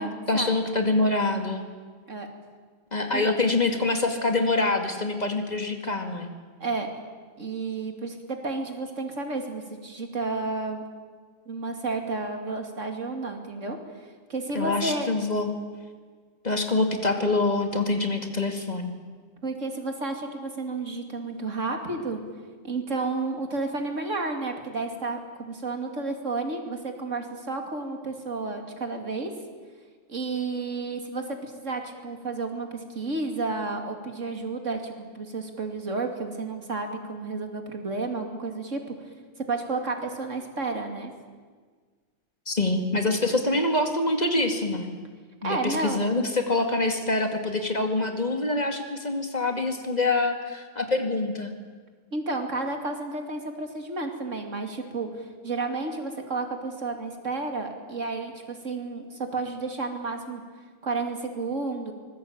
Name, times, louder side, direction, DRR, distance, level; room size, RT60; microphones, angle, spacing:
voice 1, 0.3-1.6 2.9-6.3 14.5-15.5 16.4-18.9 42.5-44.9 45.4-51.5, left 2 dB, 35° left, 5 dB, 2.4 m, -25 dB
voice 2, 7.4-10.8 11.5-13.8 14.3-15.1 19.4-22.2 22.6-29.3 30.1-38.8 39.5-41.1 45.4-46.0 52.1-60.4 60.8-61.9, right 3 dB, 75° right, 4 dB, 3.0 m, -31 dB
24.5 x 20.5 x 8.9 m, 1.5 s
omnidirectional pair, 1.3 m